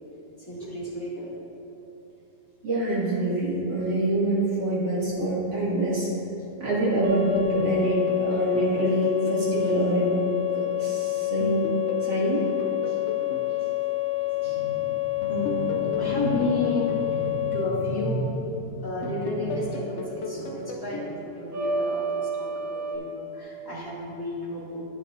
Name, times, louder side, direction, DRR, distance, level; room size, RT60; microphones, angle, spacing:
voice 1, 0.5-1.3 13.0-13.2 14.4-24.8, left 1 dB, 10° left, -9 dB, 2.0 m, -31 dB
voice 2, 2.6-6.1 6.6-10.3 10.5-11.7 12.0-12.4 14.4-14.6, right 1 dB, 80° right, -8 dB, 2.9 m, -25 dB
sound 1, 7.0-17.7 21.5-23.0, left 10 dB, 60° right, 1.2 m, -28 dB
sound 2, 7.6-10.9 11.4-14.7 15.2-18.5 19.0-22.3, left 3 dB, 70° left, 0.6 m, -38 dB
11.0 x 9.2 x 2.6 m, 3.0 s
omnidirectional pair, 1.9 m